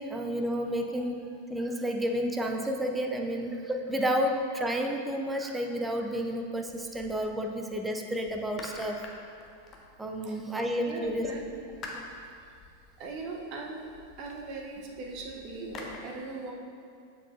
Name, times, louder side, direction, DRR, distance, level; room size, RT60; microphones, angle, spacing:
voice 1, 0.0-9.0 10.0-11.3, equal, 10° right, 3 dB, 0.5 m, -31 dB
sound 1, 6.6-7.8 8.2-10.4 11.0-16.0, left 3 dB, 30° left, 0.8 m, -48 dB
voice 2, 10.8-11.8 13.0-13.9 14.2-16.5, right 3 dB, 40° right, 0 dB, 0.9 m, -39 dB
7.1 x 6.7 x 2.6 m, 2.4 s
figure-of-eight pair, 90°, 0 cm